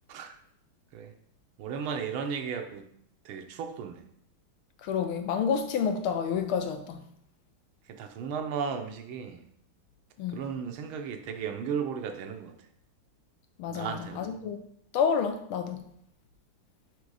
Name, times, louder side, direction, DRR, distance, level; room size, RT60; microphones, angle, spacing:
voice 1, 1.6-2.9 3.2-4.0 7.9-9.4 10.3-12.5 13.7-14.3, right 6 dB, 75° right, 1.5 m, -35 dB
voice 2, 4.8-7.0 10.2-10.4 13.6-14.6 14.9-15.8, left 6 dB, 75° left, 1.5 m, -29 dB
5.1 x 4.5 x 4.7 m
omnidirectional pair, 2.4 m